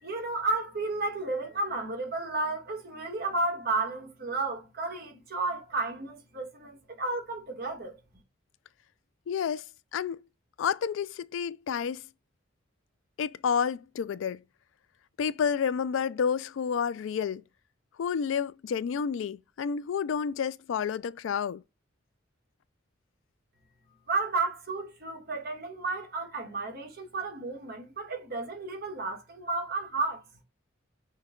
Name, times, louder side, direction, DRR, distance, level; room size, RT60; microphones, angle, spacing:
voice 1, 0.0-8.0 24.1-30.3, right 3 dB, 55° right, 1.5 m, -32 dB
voice 2, 9.3-10.2 10.6-12.0 13.2-14.4 15.2-17.4 18.0-21.6, left 7 dB, 85° left, 0.3 m, -30 dB
6.3 x 2.2 x 3.7 m
head